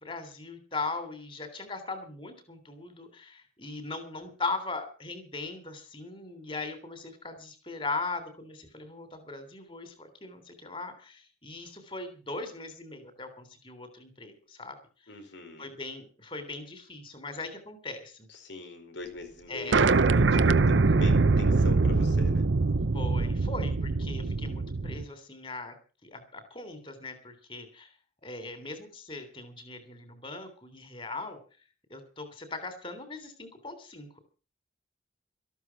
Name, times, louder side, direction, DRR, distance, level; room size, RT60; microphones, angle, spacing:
voice 1, 0.0-14.8 15.6-18.3 19.5-19.8 22.9-25.7 26.0-27.9 28.2-31.4 31.9-34.2, left 3 dB, 30° left, 10 dB, 3.4 m, -39 dB
voice 2, 15.1-15.7 18.3-22.4, left 2 dB, 85° left, 8 dB, 4.4 m, -42 dB
sound 1, 19.7-25.0, right 3 dB, 85° right, 0.7 m, -23 dB
14.0 x 12.5 x 5.9 m, 0.37 s
head